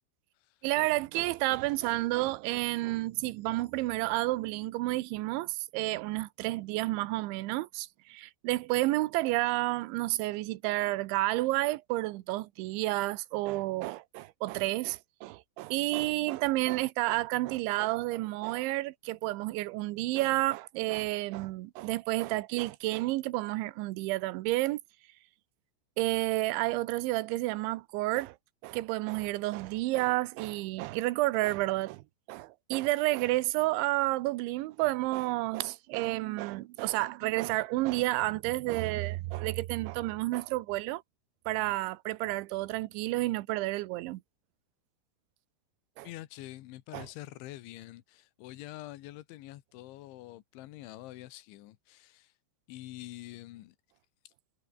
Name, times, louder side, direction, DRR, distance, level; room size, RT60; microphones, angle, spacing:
voice 1, 0.6-24.8 26.0-28.4 28.6-41.0 41.5-44.2 46.0-46.1 46.9-47.1, right 19 dB, 80° right, 3.2 m, -30 dB
voice 2, 46.0-52.3 52.7-53.8 54.3-54.4, left 16 dB, 80° left, 3.6 m, -46 dB
omnidirectional pair, 5.4 m